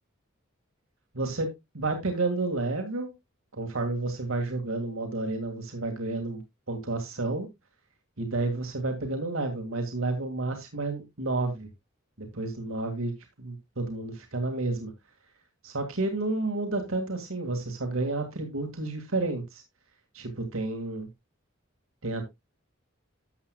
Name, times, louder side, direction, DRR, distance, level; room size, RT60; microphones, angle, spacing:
voice 1, 1.1-3.1 3.5-6.4 6.7-7.5 8.2-11.7 12.2-13.1 13.4-14.9 15.6-19.6 20.1-21.1 22.0-22.2, right 2 dB, 80° right, 4 dB, 2.0 m, -30 dB
12.5 x 7.7 x 2.2 m, 0.20 s
head